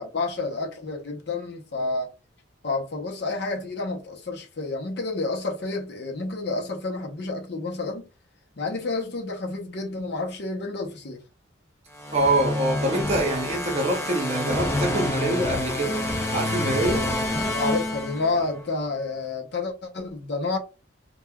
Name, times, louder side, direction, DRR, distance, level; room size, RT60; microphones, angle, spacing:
voice 1, 0.0-2.1 2.6-8.1 8.6-11.2 17.5-20.6, left 3 dB, 55° left, 0.7 m, -29 dB
sound 1, 12.0-18.7, left 1 dB, 15° left, 0.4 m, -28 dB
voice 2, 12.1-16.0 16.3-17.1, right 1 dB, 30° right, 0.7 m, -25 dB
3.2 x 2.2 x 2.2 m
head